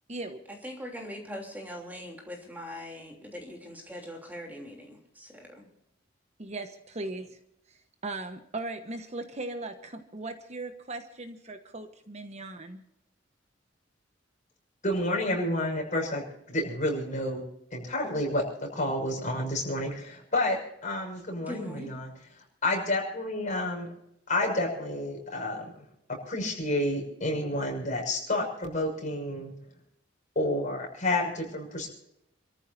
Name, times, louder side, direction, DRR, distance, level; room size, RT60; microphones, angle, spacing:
voice 1, 0.6-5.7 21.5-22.0, left 1 dB, 10° right, 0 dB, 3.1 m, -41 dB
voice 2, 7.0-7.4 7.7-12.8, right 2 dB, 35° right, 7 dB, 1.1 m, -38 dB
voice 3, 14.8-17.4 17.7-22.1 22.6-23.9 24.3-25.7 26.1-29.5 30.3-31.9, left 1 dB, 40° left, 1 dB, 6.2 m, -30 dB
29.0 x 14.0 x 2.7 m, 0.80 s
head